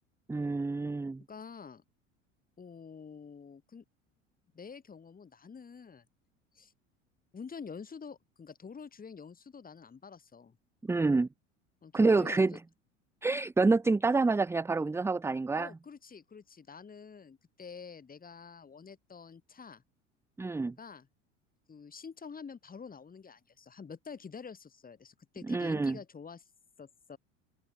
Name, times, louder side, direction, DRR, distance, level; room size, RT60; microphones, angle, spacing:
voice 1, 0.3-1.2 10.8-11.3 11.9-12.5 13.2-15.7 20.4-20.7 25.5-26.0, right 3 dB, 5° right, 0.6 m, -27 dB
voice 2, 1.3-1.8 2.6-3.8 4.5-6.0 6.5-6.7 7.3-10.6 11.8-12.6 15.6-19.8 20.8-21.1 21.7-26.5 26.8-27.2, left 6 dB, 20° left, 3.8 m, -47 dB
open air
figure-of-eight pair, 75°, 38 cm